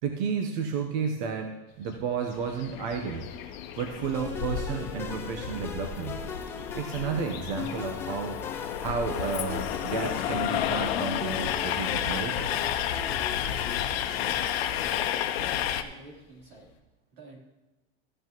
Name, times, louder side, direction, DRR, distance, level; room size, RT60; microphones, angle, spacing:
voice 1, 0.0-3.3 3.8-6.2 6.7-8.4 8.8-12.6, right 6 dB, 50° right, 4 dB, 0.9 m, -32 dB
sound 1, 1.7-16.8, left 6 dB, 35° left, 1.0 m, -53 dB
Train, 2.3-15.8, left 10 dB, 85° left, 0.9 m, -31 dB
sound 2, 4.1-14.8, left 5 dB, 10° left, 0.4 m, -40 dB
voice 2, 15.4-16.7 17.1-17.4, right 1 dB, 90° right, -2 dB, 3.6 m, -48 dB
14.5 x 8.2 x 3.0 m, 1.0 s
supercardioid pair, 175°, 30 cm